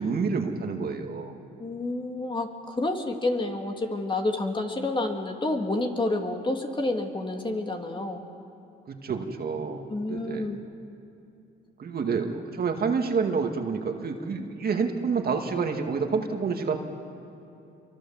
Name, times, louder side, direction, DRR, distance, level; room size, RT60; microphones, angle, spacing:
voice 1, 0.0-1.3 8.9-9.8 10.1-10.5 11.8-16.8, right 5 dB, 50° right, 4 dB, 2.2 m, -28 dB
voice 2, 1.6-8.2 9.9-10.6, left 2 dB, 25° left, 3 dB, 2.4 m, -29 dB
27.0 x 23.5 x 7.3 m, 2.7 s
cardioid pair, 90°, 20 cm